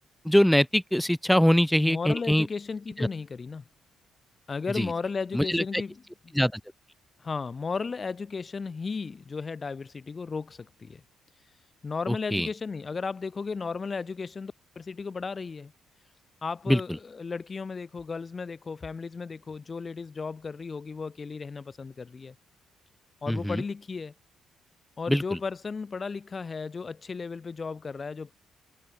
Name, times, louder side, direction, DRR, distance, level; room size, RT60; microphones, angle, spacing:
voice 1, 0.2-2.5 3.0-3.1 4.8-4.9 5.3-5.8 6.3-6.6 12.1-12.5 16.7-17.0 23.3-23.6 25.1-25.4, equal, 5° left, 0.4 m, -23 dB
voice 2, 1.8-3.6 4.5-6.3 7.2-11.0 11.8-15.7 16.4-22.4 23.2-24.1 25.0-28.3, left 4 dB, 35° left, 2.0 m, -35 dB
cardioid pair, 90°, 0 cm